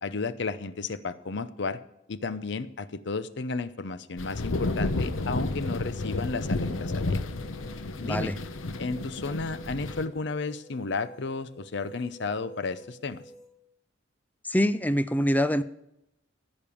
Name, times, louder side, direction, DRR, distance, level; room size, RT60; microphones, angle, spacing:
voice 1, 0.0-1.8 2.1-7.2 8.0-8.3 8.8-13.2, left 3 dB, 60° left, 14 dB, 0.7 m, -33 dB
sound 1, 4.2-10.1, left 2 dB, 90° left, 0.9 m, -31 dB
sound 2, 5.8-13.5, equal, 35° left, 2.9 m, -51 dB
voice 2, 8.0-8.4 14.4-15.6, equal, 10° left, 13 dB, 0.5 m, -25 dB
15.5 x 5.4 x 8.5 m, 0.82 s
head